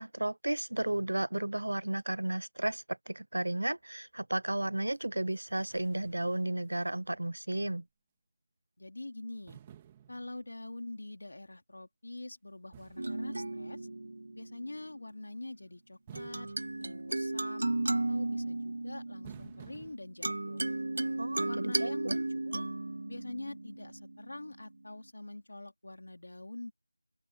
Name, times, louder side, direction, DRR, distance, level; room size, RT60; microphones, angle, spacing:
voice 1, 0.0-7.9 21.2-22.2, right 1 dB, 60° right, 0.5 m, -33 dB
sound 1, 4.9-5.0 5.3-7.4 7.7-7.8 9.5-10.8 12.7-14.1 16.1-17.6 19.2-20.0, right 10 dB, 10° right, 1.4 m, -55 dB
voice 2, 8.8-9.6 10.1-13.9 14.3-16.5 16.8-20.6 21.4-22.6 23.0-26.7, left 2 dB, 50° left, 3.5 m, -45 dB
sound 2, 13.0-14.8 16.2-24.7, right 2 dB, 45° right, 1.5 m, -35 dB
open air
figure-of-eight pair, 180°, 0 cm